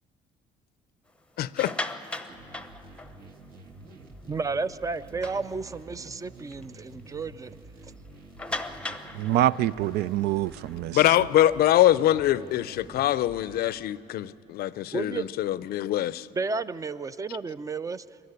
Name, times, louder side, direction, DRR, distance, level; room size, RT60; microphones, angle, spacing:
voice 1, 1.4-1.7 10.9-16.3, left 13 dB, 65° left, 0.5 m, -23 dB
sound 1, 1.4-3.5 4.0-4.1 4.5-4.6 5.0-6.0 6.5-6.6 7.0-7.1 8.4-11.7, left 2 dB, 5° left, 0.8 m, -38 dB
sound 2, 2.3-13.6, right 2 dB, 60° right, 1.8 m, -48 dB
voice 2, 4.2-7.5 14.9-15.3 16.4-18.0, right 4 dB, 20° right, 0.4 m, -32 dB
voice 3, 9.1-11.3, right 13 dB, 75° right, 0.4 m, -26 dB
22.0 x 12.0 x 9.7 m
cardioid pair, 110°, 17 cm